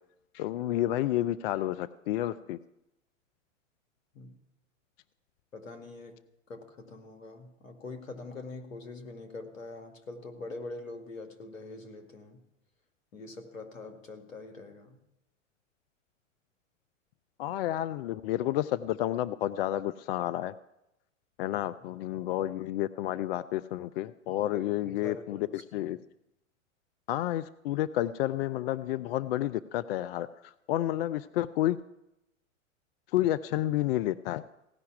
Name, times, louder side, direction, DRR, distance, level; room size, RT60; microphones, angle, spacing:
voice 1, 0.3-2.6 17.4-20.5 21.4-26.0 27.1-31.8 33.1-34.4, left 13 dB, 50° left, 15 dB, 0.5 m, -30 dB
voice 2, 5.5-6.2 6.5-12.4 13.1-15.0 24.5-25.9, left 3 dB, 80° left, 5 dB, 2.1 m, -44 dB
16.0 x 5.7 x 9.9 m, 0.89 s
hypercardioid pair, 105°, 39 cm